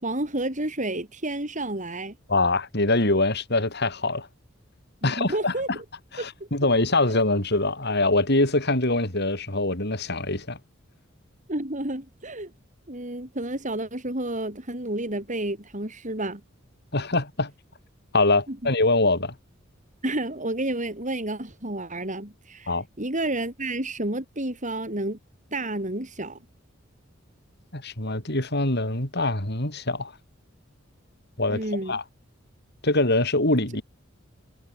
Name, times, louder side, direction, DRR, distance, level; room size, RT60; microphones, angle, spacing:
voice 1, 0.0-2.1 5.0-5.8 6.2-6.3 11.5-12.5 12.9-16.4 18.5-18.6 20.0-25.2 25.5-26.4 31.5-32.0, right 1 dB, 40° right, 7.3 m, -30 dB
voice 2, 2.3-4.3 5.0-5.5 6.1-10.6 16.9-17.5 18.1-19.3 22.7-22.8 27.7-30.1 31.4-32.0 32.8-33.8, left 2 dB, 55° left, 6.4 m, -24 dB
head